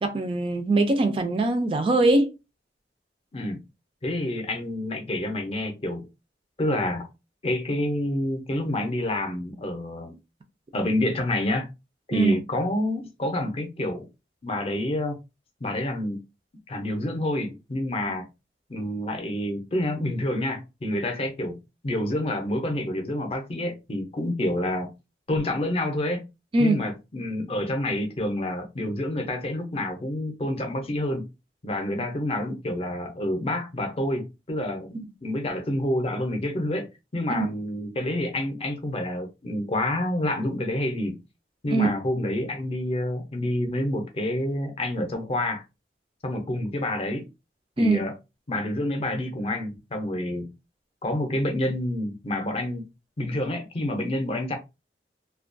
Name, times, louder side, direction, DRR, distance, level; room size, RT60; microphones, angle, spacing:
voice 1, 0.0-2.3 12.1-12.4 26.5-26.8 32.0-32.1 34.9-35.0 37.4-37.5 41.7-41.9 47.8-48.0, right 2 dB, 30° right, 0.3 m, -22 dB
voice 2, 4.0-6.1 6.6-7.1 7.4-10.2 10.7-11.7 12.1-14.1 14.4-15.2 15.6-16.2 16.7-18.2 18.7-21.6 21.8-24.9 25.3-26.2 26.6-31.3 31.6-34.9 35.2-36.9 37.1-41.2 41.6-45.6 46.2-47.3 47.8-48.1 48.5-50.5 51.0-52.9 53.2-54.5, left 1 dB, 35° left, 0.5 m, -28 dB
2.2 x 2.1 x 2.5 m
head